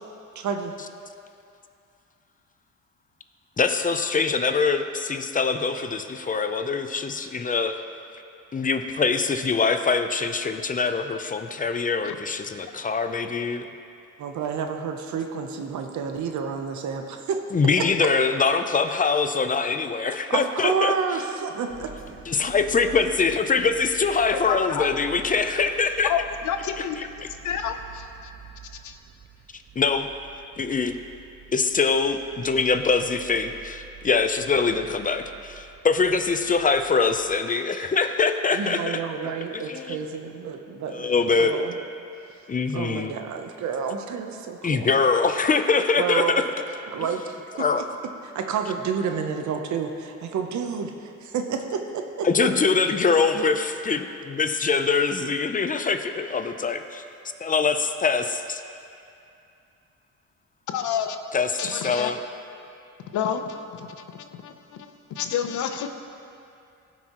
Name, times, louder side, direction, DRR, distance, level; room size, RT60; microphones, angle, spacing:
voice 1, 0.3-0.7 14.2-17.4 17.8-17.9 20.3-21.9 38.5-41.8 42.3-44.9 46.0-46.4 46.9-47.4 47.8-47.9 48.2-52.5, right 6 dB, 70° right, 5 dB, 0.9 m, -29 dB
voice 2, 3.6-7.8 8.5-13.7 17.5-20.9 22.3-26.1 29.5-30.1 30.6-31.0 31.5-39.0 39.7-40.0 40.9-41.6 42.5-43.1 44.6-46.4 47.6-47.8 52.2-57.0 57.4-58.6 61.3-62.2, left 4 dB, 25° left, 8 dB, 0.6 m, -23 dB
sound 1, 21.7-37.4, right 8 dB, 40° right, 0.9 m, -47 dB
voice 3, 24.3-24.9 26.0-27.1 27.4-28.3 28.8-29.0 60.7-61.2 61.6-62.1 63.1-65.9, left 8 dB, 75° left, 7 dB, 0.7 m, -29 dB
16.5 x 6.1 x 3.0 m, 2.5 s
cardioid pair, 90°, 30 cm